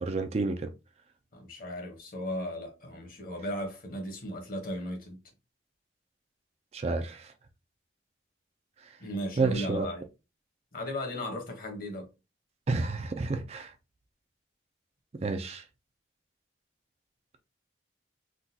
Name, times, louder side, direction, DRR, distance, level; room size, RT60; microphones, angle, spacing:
voice 1, 0.0-0.7 6.7-7.3 9.4-9.9 12.7-13.7 15.2-15.6, right 3 dB, 35° right, 0.3 m, -30 dB
voice 2, 1.3-5.2 9.0-10.0 10.7-12.1, left 1 dB, 50° left, 1.1 m, -36 dB
3.7 x 2.3 x 2.7 m
head